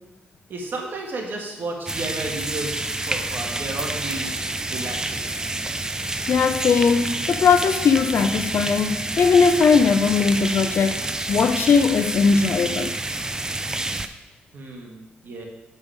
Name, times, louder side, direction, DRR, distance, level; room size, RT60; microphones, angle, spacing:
voice 1, 0.5-4.4 4.7-5.3 14.5-15.5, right 2 dB, 60° right, 1.8 m, -33 dB
sound 1, 1.9-14.1, right 2 dB, 15° right, 0.5 m, -28 dB
voice 2, 6.3-11.0 11.3-12.9, left 5 dB, 65° left, 0.6 m, -19 dB
8.2 x 5.4 x 4.8 m
cardioid pair, 85°, 4 cm